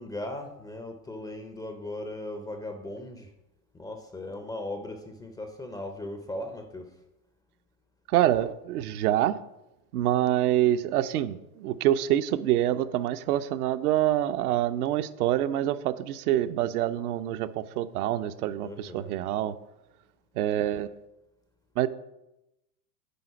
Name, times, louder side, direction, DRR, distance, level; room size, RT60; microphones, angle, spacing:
voice 1, 0.0-3.3 3.7-6.9 18.6-19.2, left 1 dB, 10° left, 6 dB, 0.4 m, -38 dB
voice 2, 8.1-9.4 9.9-19.5 20.4-20.9 21.8-21.9, right 12 dB, 65° right, 11 dB, 0.6 m, -26 dB
9.4 x 3.8 x 5.7 m, 0.91 s
hypercardioid pair, 100°, 49 cm